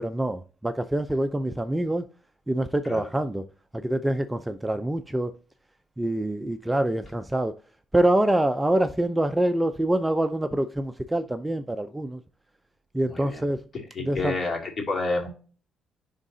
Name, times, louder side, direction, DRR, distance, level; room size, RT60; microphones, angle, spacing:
voice 1, 0.0-2.0 2.5-3.5 3.7-5.3 6.0-7.5 7.9-12.2 12.9-13.6 14.0-14.3, right 1 dB, 10° right, 0.5 m, -25 dB
voice 2, 13.0-13.5 13.9-15.3, left 3 dB, 40° left, 2.4 m, -29 dB
10.5 x 3.6 x 2.7 m
cardioid pair, 90°, 0 cm